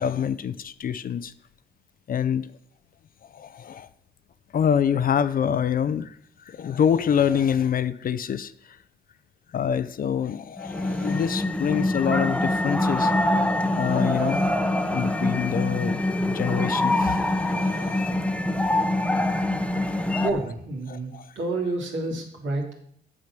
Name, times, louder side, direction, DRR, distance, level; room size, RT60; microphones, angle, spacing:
voice 1, 0.0-1.3 2.1-2.5 3.3-3.9 4.5-6.2 6.5-8.5 9.5-13.1 13.7-14.5 14.9-16.0 16.3-18.1 20.1-20.2 20.9-21.3, left 8 dB, 45° left, 0.5 m, -26 dB
sound 1, 10.6-20.3, left 1 dB, 5° left, 0.8 m, -24 dB
voice 2, 20.2-22.7, right 2 dB, 70° right, 2.7 m, -29 dB
8.6 x 6.5 x 5.9 m
cardioid pair, 90°, 20 cm